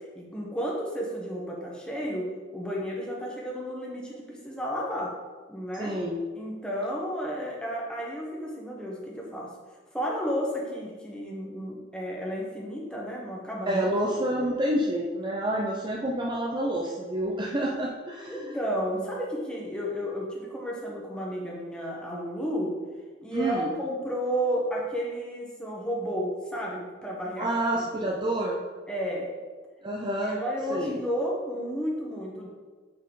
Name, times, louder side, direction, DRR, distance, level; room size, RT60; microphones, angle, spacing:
voice 1, 0.1-2.2 2.5-5.1 5.5-5.9 6.3-9.5 9.9-13.9 18.3-22.7 23.2-27.5 28.9-29.3 30.4-32.5, equal, 5° left, -3 dB, 1.3 m, -32 dB
voice 2, 5.8-6.3 13.7-18.6 23.3-23.7 27.4-28.6 29.8-30.4 30.7-31.0, right 1 dB, 25° right, -1 dB, 0.5 m, -28 dB
8.2 x 4.3 x 4.0 m, 1.4 s
head